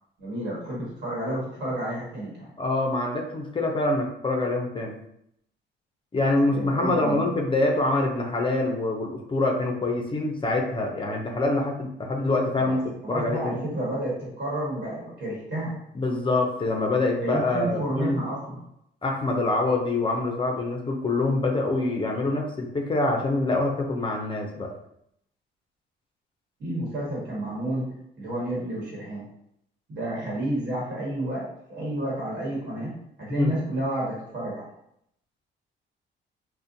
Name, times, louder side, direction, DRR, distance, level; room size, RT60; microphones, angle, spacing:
voice 1, 0.2-2.5 6.5-7.3 12.6-12.8 13.0-15.7 17.2-18.6 26.6-29.3 29.9-34.7, right 1 dB, 60° right, -5 dB, 1.2 m, -30 dB
voice 2, 2.6-5.0 6.1-12.8 13.1-13.6 15.9-18.2 19.0-24.7 33.3-33.5, left 2 dB, 25° left, 2 dB, 0.4 m, -25 dB
2.5 x 2.1 x 2.6 m, 0.74 s
cardioid pair, 90°, 20 cm